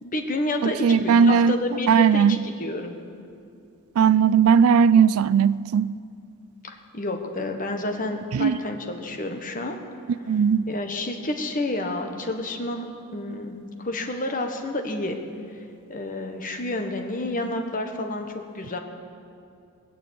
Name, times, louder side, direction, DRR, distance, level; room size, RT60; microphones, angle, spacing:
voice 1, 0.0-3.0 6.7-9.8 10.7-12.9 13.1-15.2 15.9-18.8, left 2 dB, 40° left, 1.3 m, -30 dB
voice 2, 0.6-1.6 1.9-2.4 4.0-6.0 8.3-8.6 10.3-10.7, right 6 dB, 80° right, 0.4 m, -18 dB
21.0 x 7.0 x 8.5 m
head